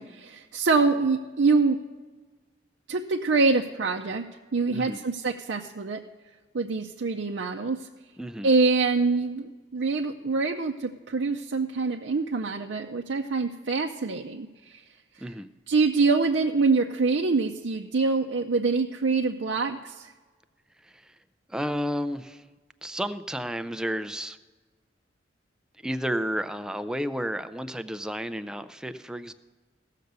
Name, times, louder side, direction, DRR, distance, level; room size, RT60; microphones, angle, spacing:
voice 1, 0.0-1.8 2.9-4.3 4.5-6.0 6.5-7.9 8.4-14.8 15.7-20.1, right 4 dB, 75° right, 1 dB, 0.5 m, -25 dB
voice 2, 8.2-8.5 15.2-15.5 20.8-21.2 21.5-22.5 22.8-24.4 25.8-29.3, equal, 5° right, 11 dB, 0.3 m, -32 dB
16.5 x 6.6 x 6.7 m, 1.3 s
head